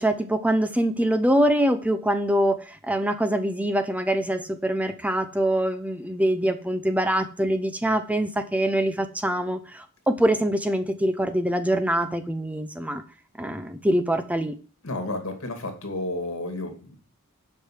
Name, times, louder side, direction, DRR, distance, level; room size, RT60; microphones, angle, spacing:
voice 1, 0.0-13.0 13.4-14.6, right 1 dB, 5° right, 10 dB, 0.6 m, -24 dB
voice 2, 14.8-17.0, left 2 dB, 65° left, 6 dB, 2.5 m, -31 dB
7.5 x 5.4 x 7.4 m, 0.37 s
head